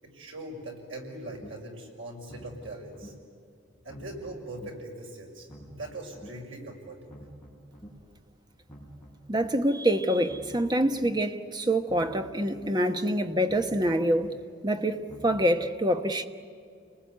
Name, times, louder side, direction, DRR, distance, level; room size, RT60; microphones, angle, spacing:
voice 1, 0.0-3.1 3.8-7.1, right 1 dB, 80° right, 6.2 m, -41 dB
sound 1, 1.3-1.5 2.1-3.1 3.7-4.7 5.3-6.3 6.9-7.9 8.5-9.5 10.1-11.1 11.7-12.7 13.3-14.3 14.9-15.6, equal, 5° left, 5.3 m, -48 dB
voice 2, 9.3-14.3 14.6-16.2, right 1 dB, 20° right, 1.1 m, -26 dB
29.5 x 20.0 x 9.5 m
head